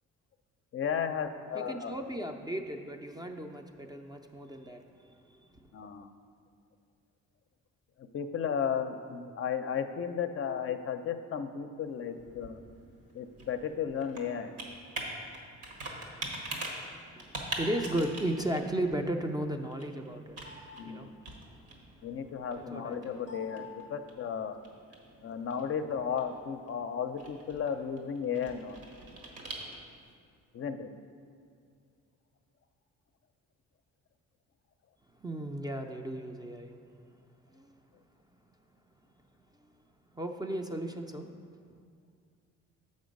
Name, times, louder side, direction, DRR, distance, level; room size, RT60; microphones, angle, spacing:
voice 1, 0.7-1.9 5.7-6.1 8.1-12.6 13.1-14.5 20.8-21.1 22.0-24.6 25.2-28.8 30.5-30.9, left 7 dB, 45° left, 8 dB, 0.5 m, -34 dB
voice 2, 1.5-5.6 17.2-20.4 20.8-21.1 22.6-23.2 35.2-36.7 37.5-37.8 40.1-41.3, right 1 dB, 15° right, 4 dB, 0.4 m, -35 dB
Computer keyboard, 11.8-30.1, right 1 dB, 85° right, 1.4 m, -44 dB
7.0 x 5.3 x 5.2 m, 2.2 s
cardioid pair, 90°, 30 cm